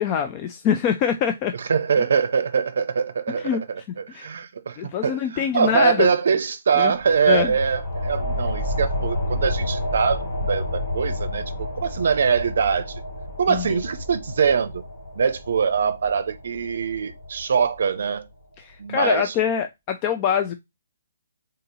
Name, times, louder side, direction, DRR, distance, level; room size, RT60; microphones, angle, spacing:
voice 1, 0.0-1.6 3.4-3.6 4.1-4.3 4.8-6.1 6.8-6.9 7.3-7.5 13.5-13.6 18.6-20.5, left 8 dB, 25° left, 0.3 m, -24 dB
voice 2, 1.5-13.0 13.4-14.8 15.2-18.3 18.8-19.3, right 6 dB, 65° right, 0.6 m, -23 dB
sound 1, 6.9-18.1, left 1 dB, 50° left, 1.7 m, -30 dB
3.8 x 2.8 x 3.8 m
hypercardioid pair, 165°, 0 cm